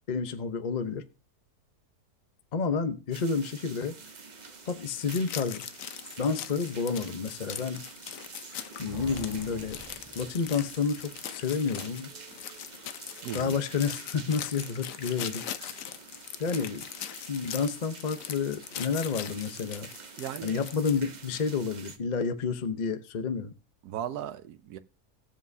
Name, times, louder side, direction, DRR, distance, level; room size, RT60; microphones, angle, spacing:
voice 1, 0.1-1.0 2.5-3.9 4.6-5.7 6.2-7.9 8.8-9.8 10.2-12.1 13.3-15.7 16.4-16.8 17.3-19.9 20.4-23.5, left 5 dB, 35° left, 0.8 m, -30 dB
sound 1, 3.1-22.0, right 4 dB, 35° right, 0.9 m, -48 dB
sound 2, 5.1-21.0, left 10 dB, 65° left, 1.0 m, -41 dB
sound 3, 8.9-11.1, equal, 20° right, 3.2 m, -47 dB
voice 2, 13.2-13.6 20.2-20.7 23.8-24.8, right 10 dB, 85° right, 1.2 m, -37 dB
18.0 x 7.3 x 2.7 m
omnidirectional pair, 1.6 m